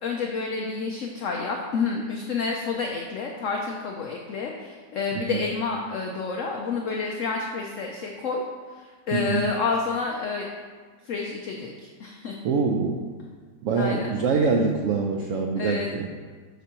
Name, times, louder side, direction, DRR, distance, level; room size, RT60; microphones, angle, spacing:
voice 1, 0.0-8.4 8.7-10.5 11.0-12.4 13.8-14.2 15.6-15.9, left 4 dB, 65° left, 0 dB, 0.8 m, -29 dB
voice 2, 9.1-9.4 12.4-13.1 13.6-16.1, right 4 dB, 80° right, 2 dB, 0.7 m, -24 dB
8.0 x 6.0 x 3.0 m, 1.5 s
omnidirectional pair, 1.9 m